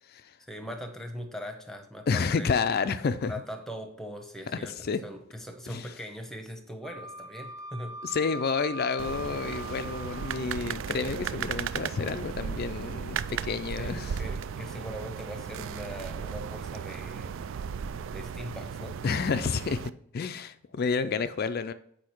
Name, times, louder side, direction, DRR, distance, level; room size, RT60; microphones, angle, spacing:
voice 1, 0.5-2.5 3.2-8.0 13.8-17.4 18.1-19.0, equal, ahead, 0.9 m, -41 dB
voice 2, 2.1-3.3 4.8-5.0 5.7-5.9 8.0-14.1 19.0-21.7, left 5 dB, 45° left, 0.4 m, -30 dB
Wind instrument woodwind instrument, 6.8-10.5, equal, 15° right, 0.6 m, -41 dB
sound 1, 9.0-19.9, right 7 dB, 60° right, 0.3 m, -36 dB
8.4 x 5.0 x 4.5 m
head